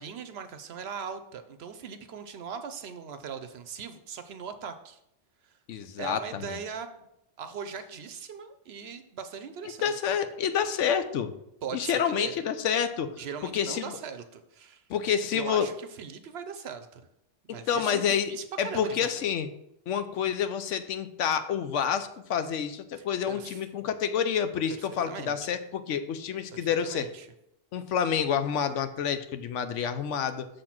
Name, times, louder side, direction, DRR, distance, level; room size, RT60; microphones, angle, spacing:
voice 1, 0.0-5.0 5.4-5.6 6.0-7.1 7.4-9.9 11.6-12.3 13.1-14.8 15.3-17.1 17.5-19.2 22.9-23.6 24.8-25.4 26.5-27.3, right 6 dB, 65° right, 9 dB, 0.8 m, -40 dB
voice 2, 5.7-6.6 9.8-11.3 11.7-13.2 13.5-14.0 14.9-15.7 17.7-18.3 18.6-19.5 19.9-27.1 27.7-30.5, left 8 dB, 75° left, 10 dB, 0.9 m, -28 dB
6.6 x 4.2 x 5.9 m, 0.81 s
omnidirectional pair, 1.3 m